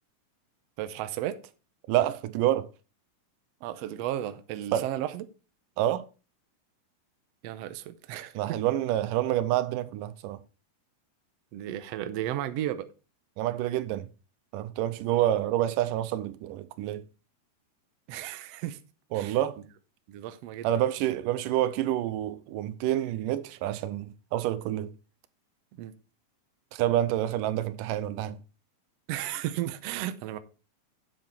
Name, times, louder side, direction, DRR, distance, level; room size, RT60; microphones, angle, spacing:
voice 1, 0.8-1.4 3.6-5.2 7.4-8.6 11.5-12.9 18.1-18.8 19.1-19.4 20.1-20.7 25.8-25.9 29.1-30.4, right 12 dB, 70° right, 1.6 m, -34 dB
voice 2, 1.9-2.7 4.7-4.9 5.8-6.1 8.4-10.4 13.4-14.1 14.5-17.0 19.1-19.6 20.6-24.9 26.7-28.4, right 13 dB, 90° right, 2.3 m, -28 dB
9.2 x 7.6 x 4.3 m
omnidirectional pair, 3.8 m